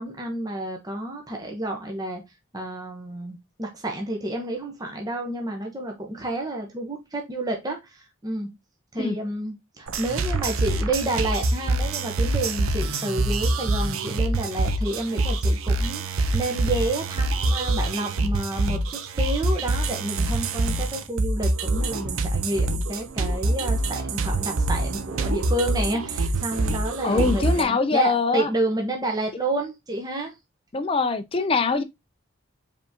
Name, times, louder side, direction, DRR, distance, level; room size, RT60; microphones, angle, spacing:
voice 1, 0.0-2.2 2.5-8.5 8.9-30.3, right 1 dB, 20° right, 0.9 m, -30 dB
sound 1, 9.9-27.6, right 2 dB, 90° right, 0.6 m, -25 dB
voice 2, 27.0-28.5 30.7-31.8, left 4 dB, 25° left, 0.4 m, -23 dB
5.1 x 3.5 x 2.8 m
head